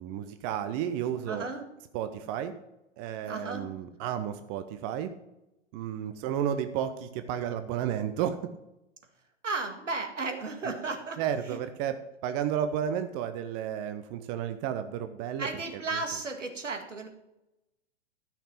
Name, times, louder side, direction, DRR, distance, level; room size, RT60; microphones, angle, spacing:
voice 1, 0.0-1.5 1.9-2.5 3.0-5.1 5.7-8.4 10.6-10.7 11.2-15.5 15.9-16.0, right 9 dB, 30° right, 10 dB, 0.8 m, -32 dB
voice 2, 1.3-1.7 3.3-3.7 9.4-11.2 11.5-11.6 15.4-17.1, right 3 dB, 80° right, 5 dB, 2.1 m, -34 dB
13.5 x 5.9 x 5.8 m, 0.91 s
figure-of-eight pair, 100°, 37 cm